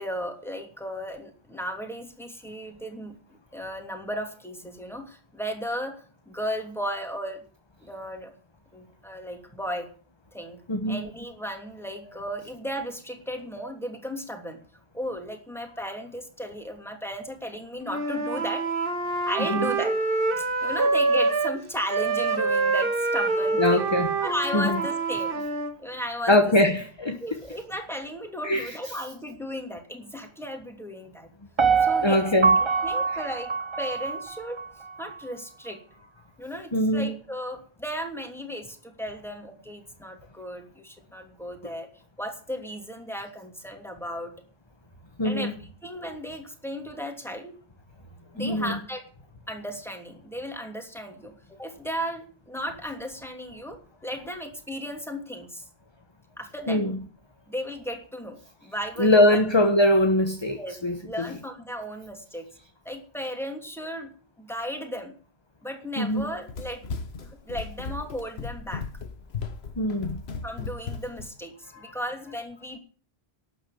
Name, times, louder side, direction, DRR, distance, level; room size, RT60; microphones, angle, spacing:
voice 1, 0.0-3.2 3.5-6.0 6.3-7.4 7.8-8.3 8.7-9.9 10.3-10.6 10.9-14.6 14.9-18.7 19.3-20.0 20.4-23.9 24.2-25.4 25.8-26.4 27.2-31.3 31.7-32.4 32.8-33.5 33.8-34.6 35.0-35.8 36.4-41.9 42.2-44.3 45.2-45.5 45.8-47.6 48.3-49.0 49.5-53.8 54.0-55.6 56.4-57.0 57.5-59.4 60.5-62.5 62.8-64.1 64.4-65.1 65.6-66.8 67.2-68.8 70.4-72.8, equal, ahead, 3 dB, 2.9 m, -35 dB
voice 2, 10.7-11.0 19.5-19.7 23.6-24.1 24.5-24.8 26.3-27.2 28.4-28.9 32.0-32.6 36.7-37.1 45.2-45.5 48.4-48.8 56.7-57.0 59.0-61.3 66.0-66.3 69.8-70.2, left 1 dB, 25° left, 6 dB, 1.2 m, -22 dB
Wind instrument woodwind instrument, 17.9-21.6 21.9-25.7, right 3 dB, 60° right, 1.7 m, -26 dB
Piano, 31.6-34.7 35.1-35.2, right 5 dB, 30° right, 0.8 m, -24 dB
Run, 66.1-71.3, left 4 dB, 75° left, 1.4 m, -36 dB
12.0 x 8.8 x 8.5 m, 0.42 s
omnidirectional pair, 1.1 m